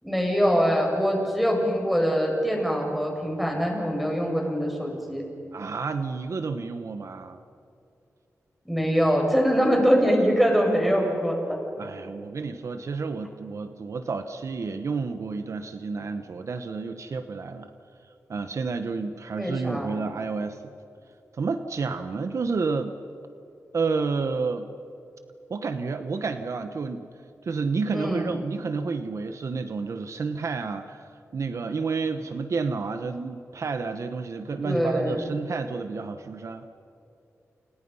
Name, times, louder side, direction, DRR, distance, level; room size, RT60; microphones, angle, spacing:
voice 1, 0.0-5.2 8.7-11.6 19.3-19.9 27.9-28.3 34.6-35.2, equal, ahead, 0 dB, 6.9 m, -23 dB
voice 2, 5.5-7.4 11.8-17.7 18.3-20.6 21.3-23.0 23.7-24.7 25.5-27.1 27.4-36.6, right 4 dB, 65° right, 8 dB, 1.1 m, -30 dB
29.0 x 29.0 x 5.6 m, 2.6 s
wide cardioid pair, 105°, 6 cm